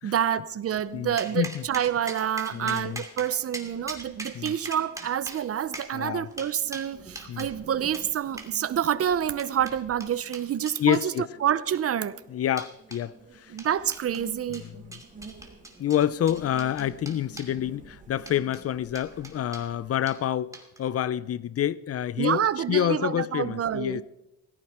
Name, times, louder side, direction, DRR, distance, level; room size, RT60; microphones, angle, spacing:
voice 1, 0.0-11.1 11.4-12.2 13.5-14.6 22.2-24.0, right 9 dB, 50° right, 0.8 m, -28 dB
sound 1, 0.8-20.2, right 4 dB, 25° right, 2.8 m, -51 dB
voice 2, 0.9-1.6 2.5-3.0 4.3-4.5 5.9-6.3 7.3-7.5 10.8-11.3 12.3-13.6 14.6-14.7 15.8-24.0, left 11 dB, 50° left, 0.6 m, -28 dB
sound 2, 1.2-7.5 7.9-8.1 8.4-8.5 9.0-11.1 11.6-12.0 12.6-13.0 13.6-14.3 14.5-17.5 18.2-18.6 19.0-19.7 20.1-20.2 20.5-20.9, right 2 dB, 10° right, 2.6 m, -41 dB
17.0 x 14.5 x 4.4 m
cardioid pair, 90°, 30 cm